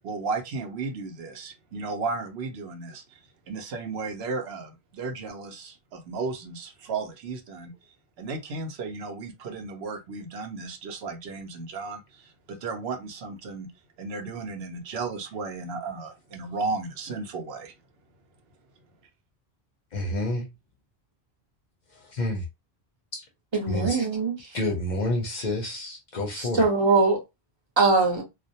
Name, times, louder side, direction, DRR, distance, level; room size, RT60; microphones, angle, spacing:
voice 1, 0.0-13.7 14.0-17.7, right 4 dB, 80° right, 0.9 m, -34 dB
voice 2, 19.9-20.5 21.9-22.4 23.1-23.2 23.7-24.0 24.5-26.7, left 1 dB, 50° left, 0.6 m, -29 dB
voice 3, 23.5-24.3 26.4-27.2 27.8-28.2, right 3 dB, 30° right, 0.7 m, -22 dB
2.3 x 2.0 x 2.7 m
omnidirectional pair, 1.1 m